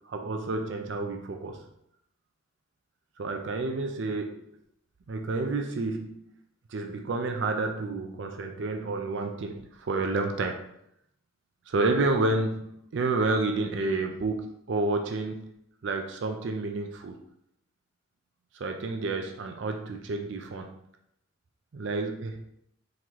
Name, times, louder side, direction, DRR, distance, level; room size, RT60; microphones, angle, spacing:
voice 1, 0.0-1.6 3.2-4.4 5.1-6.2 6.7-10.6 11.7-15.5 15.8-17.1 18.5-20.8 21.7-22.4, right 3 dB, 60° right, 4 dB, 0.4 m, -30 dB
3.8 x 3.0 x 4.5 m, 0.75 s
head